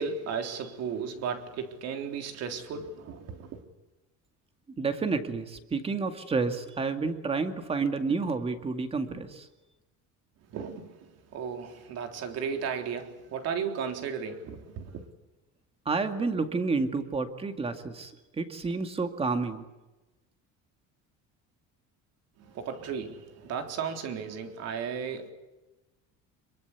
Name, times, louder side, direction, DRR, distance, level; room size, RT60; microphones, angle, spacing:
voice 1, 0.0-3.7 10.5-15.0 22.4-25.3, right 6 dB, 55° right, 3.7 m, -35 dB
voice 2, 4.8-9.5 15.9-18.1 18.4-19.6, right 4 dB, 20° right, 2.2 m, -30 dB
27.0 x 23.0 x 8.4 m
cardioid pair, 175°, 31 cm